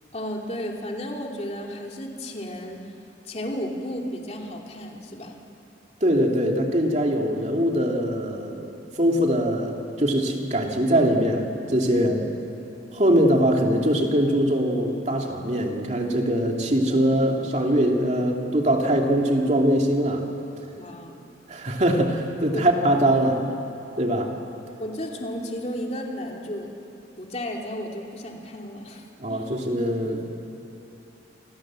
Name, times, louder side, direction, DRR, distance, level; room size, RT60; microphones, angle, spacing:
voice 1, 0.1-2.8 3.2-5.4 11.9-12.1 20.7-21.2 22.5-22.7 24.8-26.7 27.2-29.5, equal, 35° left, 0 dB, 2.8 m, -33 dB
voice 2, 6.0-8.7 9.0-12.3 12.9-20.3 21.5-23.4 24.0-24.3 29.2-30.3, equal, 40° right, 1 dB, 2.8 m, -22 dB
28.5 x 26.5 x 7.6 m, 2.8 s
head